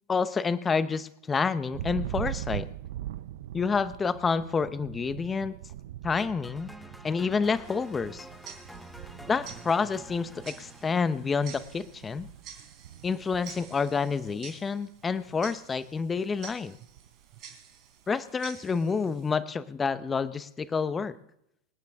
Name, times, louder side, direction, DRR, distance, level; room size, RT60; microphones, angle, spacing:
voice 1, 0.1-2.7 3.5-5.5 6.0-6.7 7.0-8.3 9.3-12.3 13.0-16.8 18.1-21.2, left 5 dB, 20° left, 14 dB, 0.8 m, -28 dB
Thunder, 1.7-14.6 14.9-15.5 15.8-17.3, right 13 dB, 70° right, 0.5 m, -42 dB
sound 1, 6.2-12.3, equal, ahead, 1.1 m, -49 dB
Tick-tock, 7.6-19.3, right 7 dB, 45° right, 4.0 m, -50 dB
24.5 x 9.5 x 3.6 m, 0.79 s
hypercardioid pair, 115°, 0 cm